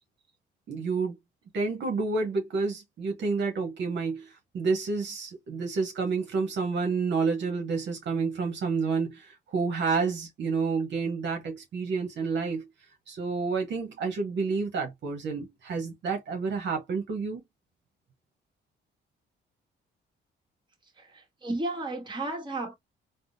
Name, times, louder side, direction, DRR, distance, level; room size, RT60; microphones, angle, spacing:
voice 1, 0.7-1.2 1.5-12.7 13.1-17.4, right 4 dB, 65° right, 1.0 m, -29 dB
voice 2, 21.0-22.7, right 2 dB, 25° right, 1.4 m, -33 dB
3.4 x 2.1 x 2.6 m
cardioid pair, 90°, 20 cm